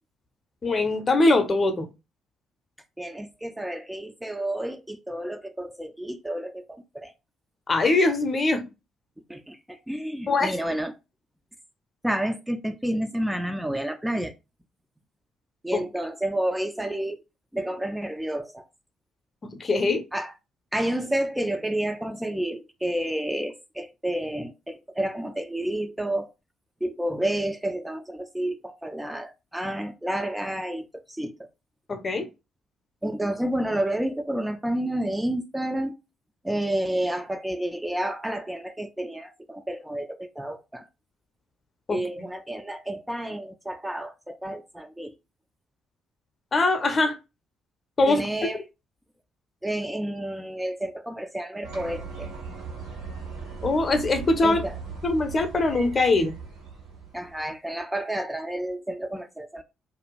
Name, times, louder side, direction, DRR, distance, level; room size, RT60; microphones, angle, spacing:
voice 1, 0.6-1.9 7.7-8.6 10.3-10.6 15.7-15.8 19.6-20.0 31.9-32.3 41.9-42.0 46.5-47.2 48.0-48.2 53.6-54.6 55.0-56.3, left 2 dB, 40° left, 0.6 m, -22 dB
voice 2, 3.0-7.1 9.3-10.9 12.0-14.3 15.6-17.2 17.5-18.7 20.1-20.3 20.7-26.3 26.8-31.3 33.0-35.9 36.4-40.9 41.9-45.1 48.1-48.6 49.6-52.3 54.4-54.8 57.1-59.6, right 1 dB, 10° right, 0.4 m, -30 dB
sound 1, 51.6-57.5, right 5 dB, 85° right, 1.2 m, -38 dB
2.6 x 2.3 x 2.9 m
figure-of-eight pair, 45°, 0 cm